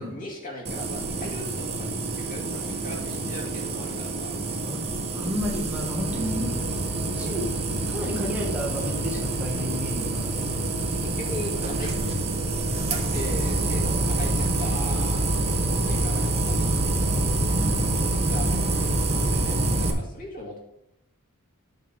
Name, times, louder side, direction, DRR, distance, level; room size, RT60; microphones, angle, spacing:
voice 1, 0.0-4.3 11.0-11.9 12.7-15.2 15.8-16.6 18.3-20.6, left 1 dB, 40° left, -2 dB, 2.1 m, -38 dB
sound 1, 0.7-19.9, right 2 dB, 30° right, 1.0 m, -26 dB
voice 2, 4.7-6.5 7.0-7.6 7.9-10.5 11.4-11.7 17.5-18.1, left 1 dB, 5° right, -3 dB, 1.6 m, -32 dB
9.4 x 3.9 x 6.3 m, 0.83 s
head